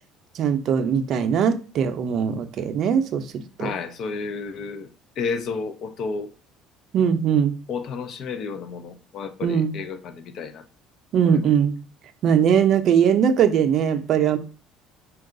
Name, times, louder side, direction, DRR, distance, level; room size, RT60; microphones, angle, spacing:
voice 1, 0.3-3.2 3.6-3.7 6.9-7.6 9.4-9.7 11.1-11.8 12.2-14.4, right 8 dB, 55° right, 0.5 m, -20 dB
voice 2, 3.6-4.9 5.2-6.3 7.7-10.6 11.2-11.5, left 5 dB, 55° left, 0.5 m, -31 dB
4.4 x 2.3 x 3.7 m
cardioid pair, 120°, 0 cm